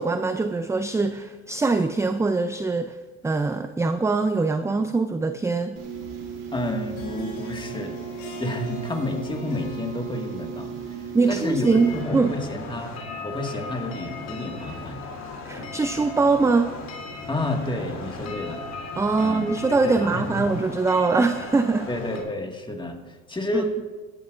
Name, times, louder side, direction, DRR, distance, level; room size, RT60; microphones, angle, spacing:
voice 1, 0.0-2.9 3.2-5.8 11.1-12.3 15.5-16.7 19.0-21.9 23.5-23.6, right 3 dB, 10° right, 10 dB, 0.4 m, -23 dB
sound 1, 5.8-12.0, right 7 dB, 65° right, 3.2 m, -36 dB
voice 2, 6.5-8.0 8.4-10.8 11.3-11.7 11.9-15.0 17.3-18.6 19.2-19.5 19.8-20.5 21.9-23.7, left 2 dB, 15° left, 3 dB, 1.8 m, -30 dB
Harp, 6.8-12.2, left 2 dB, 90° left, 3.3 m, -44 dB
sound 2, 11.6-22.2, left 3 dB, 50° left, 3.0 m, -37 dB
16.5 x 12.5 x 2.5 m, 1.4 s
supercardioid pair, 80°, 35 cm